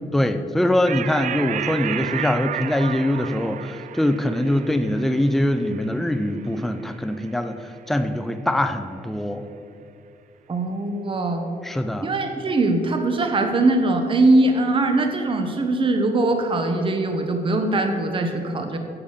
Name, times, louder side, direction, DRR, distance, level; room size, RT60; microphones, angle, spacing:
voice 1, 0.1-9.4 11.6-12.1, left 1 dB, ahead, 8 dB, 0.6 m, -23 dB
sound 1, 0.9-7.7, right 10 dB, 55° right, 0.4 m, -33 dB
voice 2, 10.5-11.5 12.0-18.8, right 2 dB, 35° right, 5 dB, 1.2 m, -21 dB
11.0 x 7.2 x 6.6 m, 2.7 s
cardioid pair, 115°, 15 cm